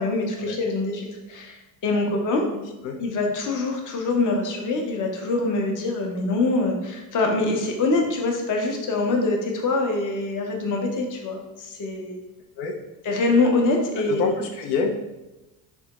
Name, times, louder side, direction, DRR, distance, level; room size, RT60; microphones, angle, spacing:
voice 1, 0.0-2.4 3.0-12.2 13.1-14.3, left 3 dB, 40° left, 2 dB, 0.7 m, -24 dB
voice 2, 2.5-3.0 12.6-12.7 14.0-14.9, left 5 dB, 85° left, 2 dB, 0.6 m, -27 dB
3.4 x 2.2 x 2.9 m, 1.0 s
supercardioid pair, 95°, 47 cm